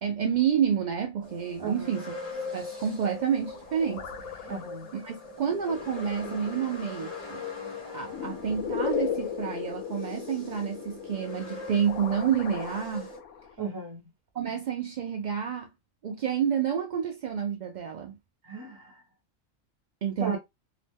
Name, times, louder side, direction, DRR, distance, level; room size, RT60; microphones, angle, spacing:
voice 1, 0.0-2.0 2.5-4.5 4.9-7.4 7.9-13.1 14.3-15.7 16.0-18.2 20.0-20.4, right 8 dB, 75° right, 0.4 m, -29 dB
sound 1, 1.2-13.2, left 4 dB, 35° left, 1.2 m, -41 dB
voice 2, 1.6-1.9 4.5-4.9 13.6-14.0 18.4-19.0 20.2-20.4, right 4 dB, 20° right, 0.6 m, -35 dB
sound 2, 3.5-13.6, left 8 dB, 75° left, 1.0 m, -37 dB
2.9 x 2.1 x 3.4 m
omnidirectional pair, 1.3 m